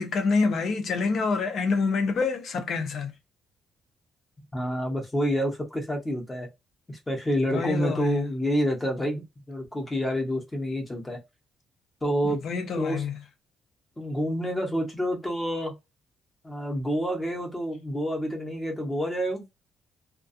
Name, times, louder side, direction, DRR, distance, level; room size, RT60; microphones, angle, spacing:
voice 1, 0.0-3.1 7.5-8.3 12.2-13.2, left 4 dB, 45° left, 0.6 m, -27 dB
voice 2, 4.5-6.5 6.9-11.2 12.0-12.4 12.8-13.0 14.0-15.7 16.4-19.4, equal, 10° left, 0.8 m, -28 dB
2.3 x 2.2 x 2.5 m
cardioid pair, 170°, 0 cm